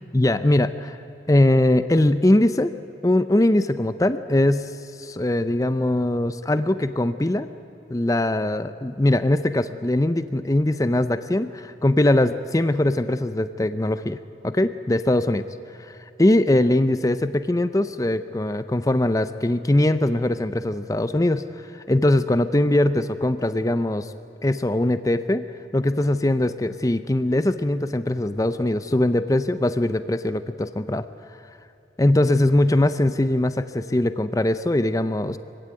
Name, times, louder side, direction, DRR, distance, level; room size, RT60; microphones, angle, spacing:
voice 1, 0.1-1.0 1.3-2.7 3.0-4.7 5.0-7.5 7.9-14.2 14.4-15.4 15.8-24.1 24.4-25.4 25.7-31.1 32.0-35.4, left 1 dB, 20° left, 12 dB, 0.5 m, -21 dB
24.0 x 16.0 x 9.3 m, 2.9 s
head